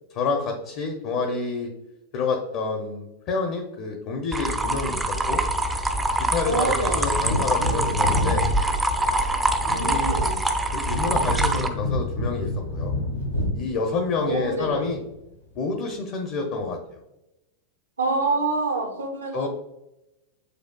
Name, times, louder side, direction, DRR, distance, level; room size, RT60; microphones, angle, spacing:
voice 1, 0.1-1.7 2.1-5.4 6.3-8.5 9.8-10.2 10.7-12.9 13.5-15.0 15.6-17.0 19.3-19.5, left 4 dB, 45° left, 3 dB, 0.5 m, -28 dB
sound 1, 4.3-11.7, right 1 dB, 10° right, 0.3 m, -24 dB
voice 2, 6.4-7.2 9.7-10.4 14.2-14.9 18.0-19.5, right 3 dB, 75° right, 3 dB, 0.7 m, -27 dB
Wind / Thunder, 7.0-15.3 15.6-15.7, left 1 dB, 85° left, 0.8 m, -29 dB
6.5 x 2.3 x 2.2 m, 0.93 s
figure-of-eight pair, 90°, 0 cm